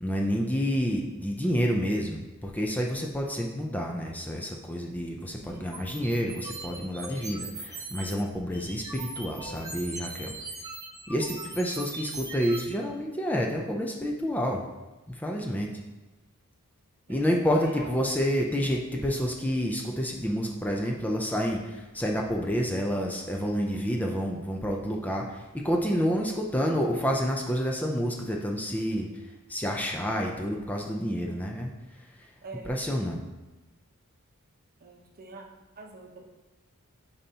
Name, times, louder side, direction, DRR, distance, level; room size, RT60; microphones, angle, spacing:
voice 1, 0.0-10.3 11.1-14.6 15.1-15.7 17.1-29.1 29.5-31.7 32.6-33.2, equal, 5° left, 0 dB, 0.4 m, -29 dB
voice 2, 5.4-5.8 17.1-17.2 17.6-17.9 32.4-32.7 34.8-35.4 35.8-36.2, right 3 dB, 45° right, 2 dB, 0.8 m, -44 dB
sound 1, 5.7-8.2 8.5-12.6, right 3 dB, 15° right, 0.8 m, -40 dB
8.7 x 4.1 x 2.8 m, 1.1 s
head